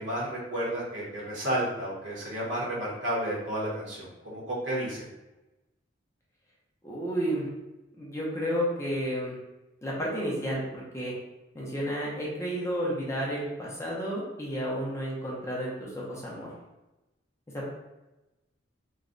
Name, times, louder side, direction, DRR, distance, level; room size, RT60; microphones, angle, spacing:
voice 1, 0.0-5.0, right 1 dB, 65° right, -6 dB, 1.3 m, -32 dB
voice 2, 6.8-7.5 8.0-9.4 9.8-11.1 11.5-16.5 17.5-17.7, equal, 15° left, -5 dB, 0.8 m, -31 dB
3.2 x 2.3 x 3.8 m, 1.0 s
head